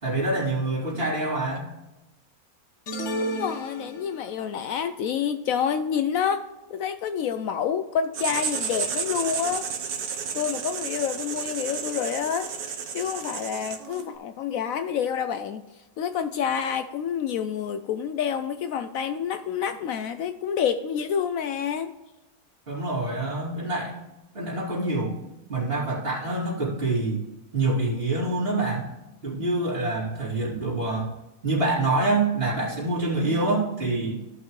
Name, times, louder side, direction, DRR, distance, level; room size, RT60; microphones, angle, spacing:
voice 1, 0.0-1.7 22.7-24.0 24.3-25.2 25.5-27.3 27.5-28.9 29.2-31.1 31.4-34.2, right 2 dB, 40° right, -6 dB, 3.2 m, -26 dB
sound 1, 2.9-4.4, equal, 55° left, 1.3 m, -32 dB
voice 2, 3.2-6.4 6.7-9.7 10.3-12.5 12.9-15.6 16.0-21.9, left 8 dB, 70° left, 10 dB, 0.9 m, -28 dB
Writing, 8.1-14.1, right 7 dB, 80° right, 1.4 m, -32 dB
14.5 x 5.8 x 3.2 m, 1.0 s
omnidirectional pair, 1.6 m